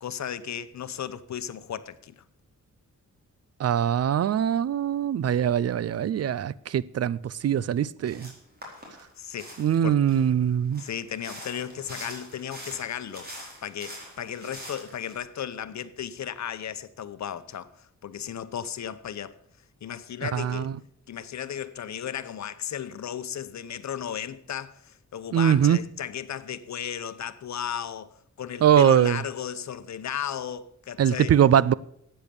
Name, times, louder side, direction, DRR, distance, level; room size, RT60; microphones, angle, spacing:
voice 1, 0.0-2.2 9.2-9.5 9.8-10.0 10.8-13.3 13.6-19.4 19.8-20.7 21.1-31.3, left 9 dB, 65° left, 0.9 m, -35 dB
voice 2, 3.6-8.3 9.6-10.8 20.2-20.7 25.3-25.8 28.6-29.2 31.0-31.7, right 9 dB, 55° right, 0.4 m, -22 dB
sound 1, 8.0-8.3 8.6-10.3 10.7-15.1, equal, 30° right, 4.4 m, -43 dB
13.0 x 8.9 x 7.0 m
wide cardioid pair, 175°, 30 cm